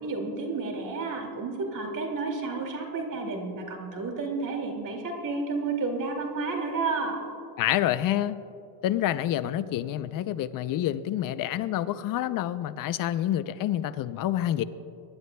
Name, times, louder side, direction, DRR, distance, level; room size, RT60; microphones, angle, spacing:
voice 1, 0.0-7.2, right 3 dB, 40° right, 2 dB, 2.4 m, -31 dB
voice 2, 7.6-8.4 8.8-14.6, left 12 dB, 45° left, 14 dB, 0.6 m, -28 dB
24.5 x 11.0 x 2.3 m, 2.5 s
supercardioid pair, 105°, 48 cm